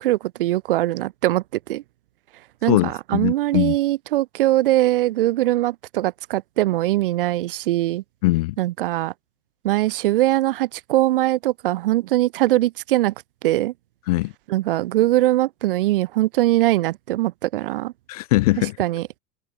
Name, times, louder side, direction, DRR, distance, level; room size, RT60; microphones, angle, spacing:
voice 1, 0.0-1.8 2.6-8.0 8.6-9.1 9.6-13.1 13.4-13.7 14.5-17.9 18.8-19.2, right 16 dB, 35° right, 0.5 m, -21 dB
voice 2, 2.7-3.8 8.2-8.6 14.1-14.3 18.1-18.8, left 20 dB, 25° left, 0.6 m, -21 dB
supercardioid pair, 175°, 47 cm